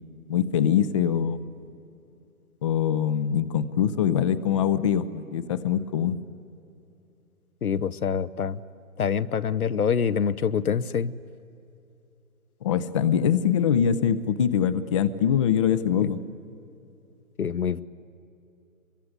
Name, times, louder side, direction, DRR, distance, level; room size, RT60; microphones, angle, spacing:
voice 1, 0.3-1.4 2.6-6.2 12.6-16.2, left 8 dB, 20° left, 14 dB, 0.6 m, -23 dB
voice 2, 7.6-8.6 9.0-11.1 16.0-16.1 17.4-17.8, left 7 dB, 80° left, 14 dB, 1.0 m, -25 dB
24.5 x 23.0 x 9.8 m, 2.8 s
figure-of-eight pair, 135°, 44 cm